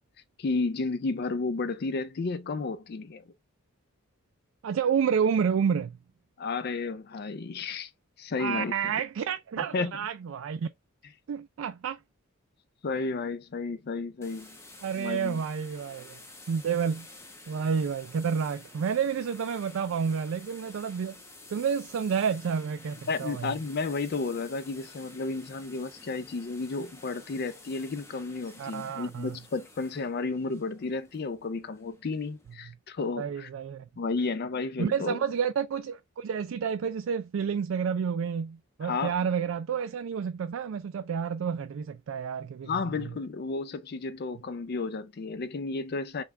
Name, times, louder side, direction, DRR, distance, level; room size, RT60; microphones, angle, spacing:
voice 1, 0.4-3.2 6.4-7.9 8.2-8.9 9.6-9.9 12.8-14.6 15.0-15.4 23.1-33.5 34.0-35.2 38.8-39.1 42.6-46.2, left 3 dB, 50° left, 0.4 m, -32 dB
voice 2, 4.6-6.0 8.4-10.7 11.3-12.0 14.8-16.2 16.5-17.1 17.5-21.2 21.5-23.5 28.6-29.4 33.2-33.9 34.8-42.7 43.0-43.1, right 7 dB, 65° right, 0.3 m, -30 dB
sound 1, 14.2-32.5, left 2 dB, 15° left, 0.8 m, -51 dB
5.7 x 2.3 x 3.2 m
head